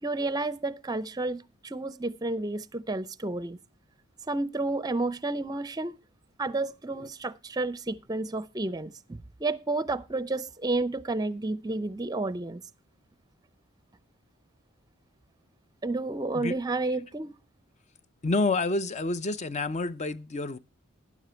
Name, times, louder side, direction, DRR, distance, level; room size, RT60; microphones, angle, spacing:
voice 1, 0.0-3.6 4.3-6.0 6.4-12.6 15.8-17.3, right 2 dB, 20° right, 0.6 m, -31 dB
voice 2, 18.2-20.6, left 3 dB, 35° left, 0.6 m, -28 dB
12.0 x 9.8 x 4.4 m
head